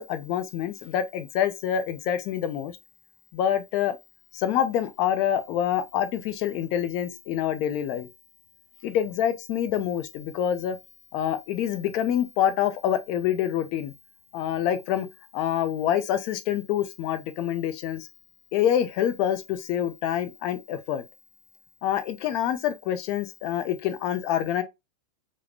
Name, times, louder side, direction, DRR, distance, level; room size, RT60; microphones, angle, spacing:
voice 1, 0.0-2.8 3.3-4.0 4.3-8.1 8.8-10.8 11.1-13.9 14.3-15.1 15.3-18.1 18.5-21.0 21.8-24.6, left 10 dB, 40° left, 0.6 m, -26 dB
4.8 x 2.1 x 3.2 m
figure-of-eight pair, 90°, 0 cm